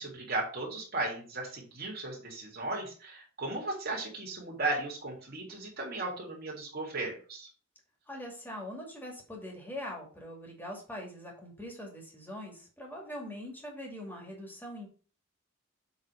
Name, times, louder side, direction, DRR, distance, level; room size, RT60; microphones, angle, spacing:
voice 1, 0.0-7.5, right 2 dB, 50° right, -1 dB, 3.4 m, -36 dB
voice 2, 8.1-14.9, left 1 dB, 10° left, 0 dB, 2.4 m, -42 dB
8.0 x 4.1 x 5.0 m, 0.39 s
head